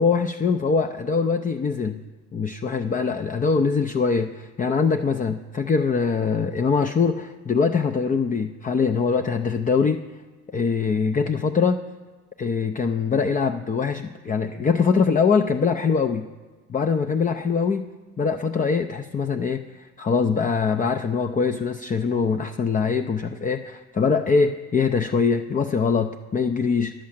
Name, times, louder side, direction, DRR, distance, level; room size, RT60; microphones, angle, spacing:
voice 1, 0.0-2.0 2.3-10.0 10.5-11.8 12.4-16.3 16.7-17.8 18.2-26.9, left 5 dB, 25° left, 7 dB, 0.5 m, -23 dB
11.5 x 7.5 x 7.3 m, 1.4 s
cardioid pair, 95°, 30 cm